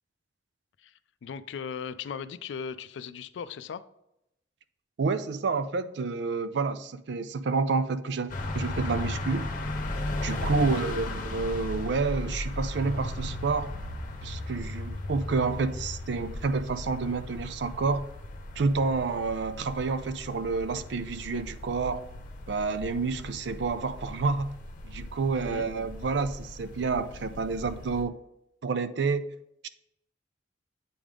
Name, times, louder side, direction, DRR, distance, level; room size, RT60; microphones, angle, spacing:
voice 1, 0.8-3.8 10.8-11.0 25.3-25.6, left 6 dB, 85° left, 13 dB, 0.4 m, -38 dB
voice 2, 5.0-9.5 10.2-13.7 14.2-18.0 18.6-22.0 22.5-24.6 24.8-28.1 28.6-29.3 29.6-29.7, right 4 dB, 70° right, 12 dB, 0.4 m, -29 dB
sound 1, 8.3-28.0, left 2 dB, 50° left, 0.8 m, -36 dB
8.5 x 3.4 x 3.7 m, 0.83 s
head